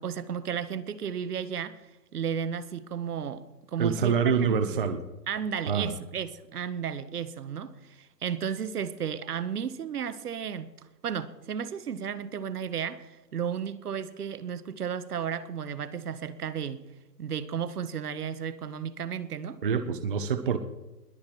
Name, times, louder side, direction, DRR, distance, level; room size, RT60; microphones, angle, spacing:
voice 1, 0.0-1.8 2.1-3.5 3.7-4.8 5.3-10.7 11.0-16.8 17.2-19.6, right 7 dB, 70° right, 1.2 m, -33 dB
voice 2, 3.8-5.0 5.7-5.9 19.6-20.6, right 6 dB, 35° right, 0.7 m, -26 dB
21.0 x 8.6 x 4.5 m
hypercardioid pair, 170°, 48 cm